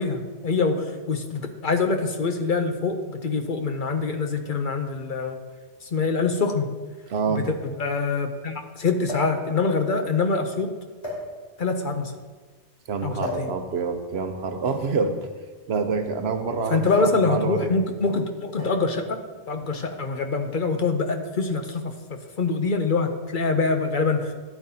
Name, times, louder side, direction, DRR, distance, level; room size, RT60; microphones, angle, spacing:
voice 1, 0.0-5.4 5.8-6.7 7.3-10.7 11.6-12.1 13.0-13.5 16.7-19.2 19.5-21.9 22.4-24.3, left 4 dB, 50° left, 6 dB, 0.8 m, -25 dB
sound 1, 5.3-5.4 6.5-6.6 6.9-7.0 9.0-9.4 10.3-10.5 11.0-11.7 13.2-13.5 14.7-16.3 16.9-17.3 17.5-17.8 18.6-19.0 19.9-20.2, left 2 dB, 70° left, 3.6 m, -35 dB
voice 2, 7.1-7.5 12.9-15.3 15.7-17.7, right 5 dB, 65° right, 7 dB, 1.0 m, -27 dB
12.5 x 9.1 x 2.8 m, 1.4 s
omnidirectional pair, 1.2 m